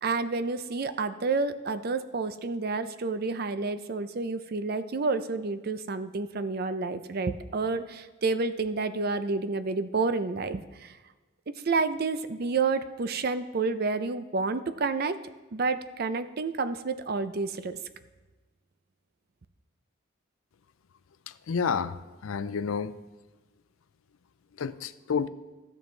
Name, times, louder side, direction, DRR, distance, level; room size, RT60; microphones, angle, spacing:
voice 1, 0.0-11.0 11.6-15.2 15.5-17.8, right 4 dB, 50° right, 0.5 m, -29 dB
voice 2, 21.3-23.0 24.5-25.3, left 6 dB, 90° left, 0.5 m, -30 dB
15.5 x 7.2 x 3.3 m
head